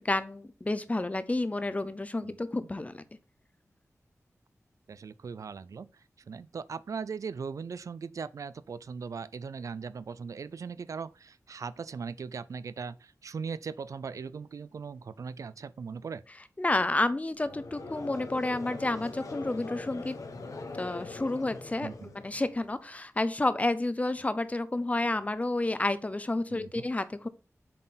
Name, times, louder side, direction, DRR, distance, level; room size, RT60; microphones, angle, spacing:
voice 1, 0.0-3.0 16.6-20.2 20.8-21.9 22.1-27.3, left 2 dB, 25° left, 0.6 m, -30 dB
voice 2, 4.9-5.9 6.3-16.2 21.8-22.1 26.5-26.8, right 5 dB, 75° right, 0.3 m, -39 dB
Conversation / Crowd, 17.4-22.7, left 3 dB, 85° left, 1.1 m, -42 dB
7.5 x 4.0 x 4.0 m
wide cardioid pair, 105°, 6 cm